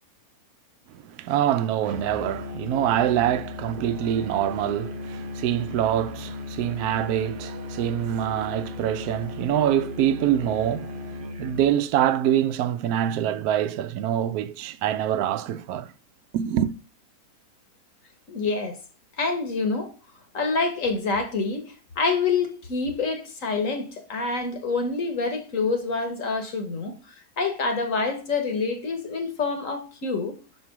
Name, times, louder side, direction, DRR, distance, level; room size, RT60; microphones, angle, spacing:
voice 1, 0.9-15.9 16.3-16.7, right 11 dB, 80° right, 1.1 m, -25 dB
Musical instrument, 1.8-11.8, left 3 dB, 45° right, 0.8 m, -36 dB
voice 2, 18.3-18.8 19.2-19.9 20.3-26.9 27.4-30.4, left 4 dB, 60° left, 1.5 m, -27 dB
6.1 x 4.5 x 4.8 m
omnidirectional pair, 1.6 m